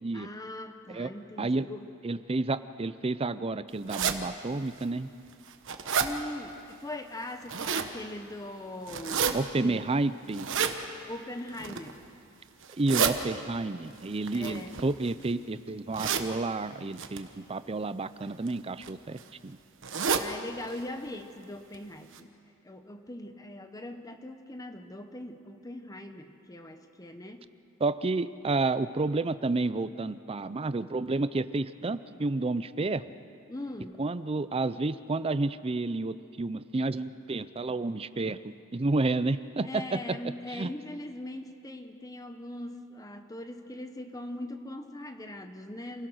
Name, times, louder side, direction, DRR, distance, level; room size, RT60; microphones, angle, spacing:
voice 1, 0.1-1.9 6.0-9.8 11.1-12.0 14.3-14.8 19.9-22.3 22.6-27.5 33.5-34.0 39.6-46.1, left 1 dB, 15° left, 7 dB, 0.9 m, -41 dB
voice 2, 2.0-5.1 9.3-10.5 12.8-19.6 27.8-33.0 34.0-40.2 40.5-40.7, right 3 dB, 25° right, 14 dB, 0.5 m, -30 dB
sound 1, 3.9-4.2 4.8-4.9 5.3-6.1 7.2-7.9 8.9-9.3 10.3-10.7 11.5-11.9 12.6-13.1 14.2-15.2 15.9-16.3 17.0-17.2 18.2-18.5 18.8-18.9 19.2-19.3 19.8-20.3 20.7-20.8 21.1-21.2 21.7-21.8 22.1-22.2, right 7 dB, 60° right, 1.1 m, -29 dB
27.5 x 17.0 x 6.3 m, 2.6 s
head